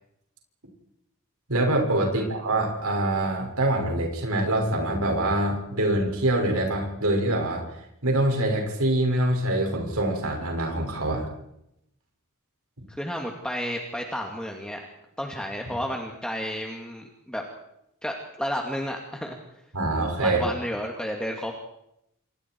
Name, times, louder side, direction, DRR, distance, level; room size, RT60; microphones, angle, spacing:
voice 1, 1.5-7.6 8.0-11.3 15.7-15.8 19.7-20.4, right 1 dB, 80° right, 2 dB, 6.1 m, -25 dB
voice 2, 12.9-14.8 15.2-17.4 18.0-19.4 20.2-21.6, equal, 5° left, 1 dB, 2.4 m, -32 dB
28.0 x 28.0 x 4.7 m, 0.80 s
head